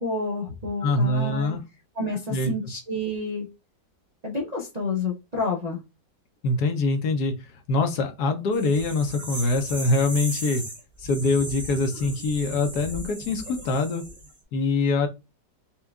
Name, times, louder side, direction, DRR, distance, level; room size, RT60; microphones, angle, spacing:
voice 1, 0.0-1.5 2.0-3.5 4.2-5.8, left 2 dB, 40° right, -5 dB, 0.6 m, -29 dB
voice 2, 0.8-1.6 2.3-2.5 6.4-10.6 11.0-14.0 14.5-15.1, left 3 dB, 70° left, 6 dB, 1.2 m, -24 dB
sound 1, 8.5-14.3, right 1 dB, 10° right, 0.9 m, -37 dB
4.4 x 2.4 x 3.5 m, 0.26 s
omnidirectional pair, 1.9 m